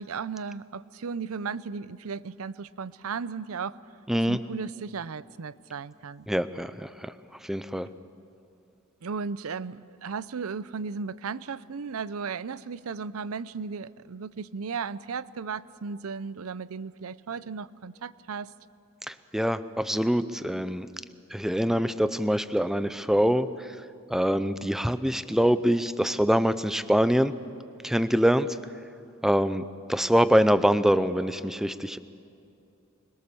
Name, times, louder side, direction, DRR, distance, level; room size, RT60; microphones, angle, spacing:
voice 1, 0.0-3.8 4.3-6.3 9.0-18.5, right 5 dB, 85° right, 17 dB, 0.6 m, -35 dB
voice 2, 4.1-4.4 6.3-7.1 7.4-7.9 19.1-20.9 21.3-23.7 24.1-27.3 27.8-28.6 29.2-29.6 29.9-32.0, equal, ahead, 13 dB, 0.6 m, -24 dB
25.5 x 21.5 x 7.0 m, 2.5 s
head